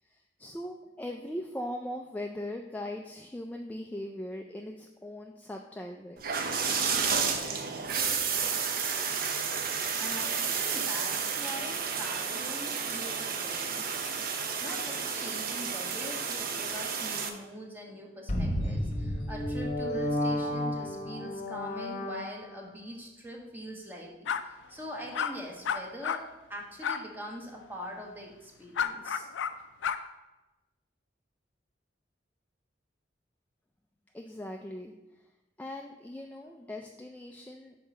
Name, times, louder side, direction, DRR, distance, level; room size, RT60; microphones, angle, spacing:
voice 1, 0.0-6.2 34.1-35.3 35.6-37.7, left 1 dB, 10° left, 2 dB, 0.3 m, -40 dB
sound 1, 6.2-17.3, right 6 dB, 50° right, 0.7 m, -31 dB
voice 2, 9.7-14.0 14.6-24.3 24.7-29.3, equal, 10° right, -1 dB, 1.1 m, -43 dB
sound 2, 18.3-22.7, left 1 dB, 40° left, 0.9 m, -32 dB
sound 3, 24.3-24.4 25.1-25.3 25.6-26.2 26.8-27.0 28.8-29.5 29.8-30.0, left 7 dB, 80° left, 0.4 m, -30 dB
5.6 x 4.2 x 5.8 m, 1.0 s
head